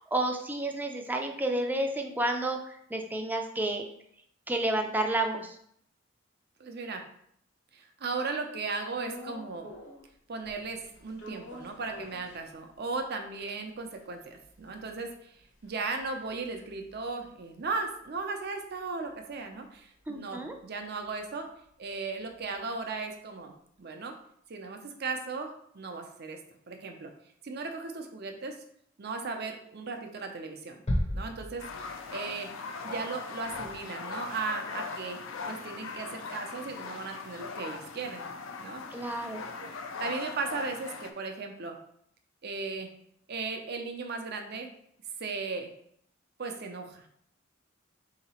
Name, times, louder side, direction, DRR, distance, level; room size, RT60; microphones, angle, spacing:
voice 1, 0.0-3.8 4.5-5.6 20.1-20.5 38.9-39.4, right 1 dB, 10° right, 4 dB, 0.4 m, -30 dB
voice 2, 6.6-7.0 7.7-9.7 10.3-21.5 21.8-23.5 23.8-24.2 24.5-26.4 26.7-27.1 27.4-28.6 29.0-30.8 31.1-32.5 32.8-35.2 35.4-38.2 38.6-39.1 39.6-39.7 40.0-41.8 42.4-42.9 43.3-44.7 45.2-45.7 46.4-47.1, right 4 dB, 55° right, 4 dB, 0.6 m, -36 dB
sound 1, 8.9-10.1 10.4-13.0 13.4-13.5 13.7-18.2 18.5-22.6, left 1 dB, 65° left, 0.9 m, -50 dB
sound 2, 30.9-32.3, equal, 35° left, 0.7 m, -32 dB
sound 3, 31.6-41.1, left 4 dB, 85° left, 0.5 m, -40 dB
3.9 x 2.9 x 4.2 m, 0.69 s
head